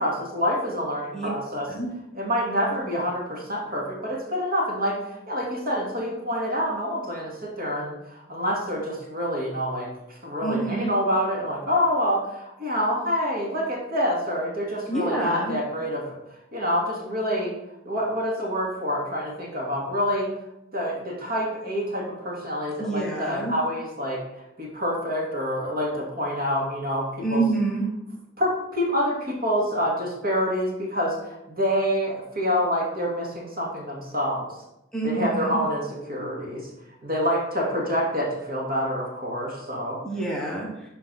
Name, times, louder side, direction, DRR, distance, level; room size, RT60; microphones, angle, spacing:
voice 1, 0.0-1.7 2.1-16.0 16.5-17.5 17.8-20.3 20.7-24.2 24.6-27.5 28.4-34.5 35.0-36.7 37.0-40.0, equal, 50° right, -2 dB, 2.4 m, -27 dB
voice 2, 10.4-10.9 14.9-15.5 22.8-23.5 27.2-27.9 34.9-35.6 40.0-40.9, right 3 dB, 5° left, -4 dB, 1.4 m, -27 dB
12.0 x 4.4 x 4.2 m, 0.88 s
head